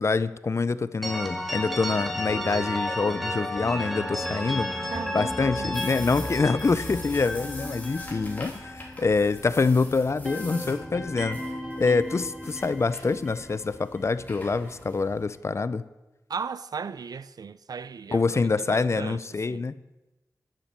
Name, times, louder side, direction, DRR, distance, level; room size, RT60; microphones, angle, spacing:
voice 1, 0.0-4.7 5.1-11.4 11.8-15.8 18.1-19.8, left 4 dB, 45° left, 0.6 m, -26 dB
sound 1, 1.0-9.8 10.0-14.2, left 1 dB, ahead, 2.2 m, -33 dB
voice 2, 4.9-6.0 16.3-19.2 19.5-19.6, right 6 dB, 70° right, 0.5 m, -36 dB
sound 2, 5.7-15.3, left 2 dB, 25° left, 3.2 m, -45 dB
10.0 x 9.6 x 7.5 m
wide cardioid pair, 115°, 7 cm